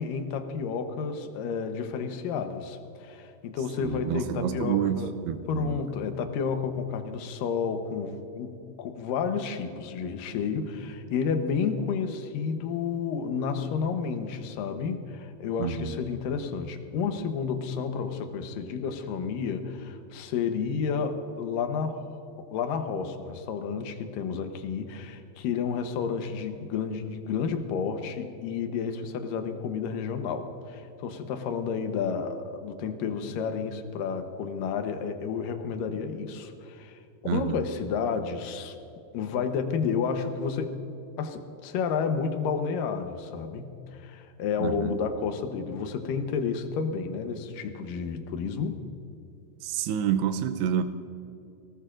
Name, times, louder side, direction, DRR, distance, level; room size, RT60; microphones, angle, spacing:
voice 1, 0.0-5.1 5.5-8.5 8.8-38.8 39.1-40.8 41.2-48.8, left 6 dB, 70° left, 2.3 m, -31 dB
voice 2, 3.8-5.8 15.6-16.0 37.2-37.6 44.6-45.0 49.6-50.8, right 9 dB, 85° right, 2.7 m, -28 dB
24.5 x 18.5 x 2.5 m
omnidirectional pair, 4.8 m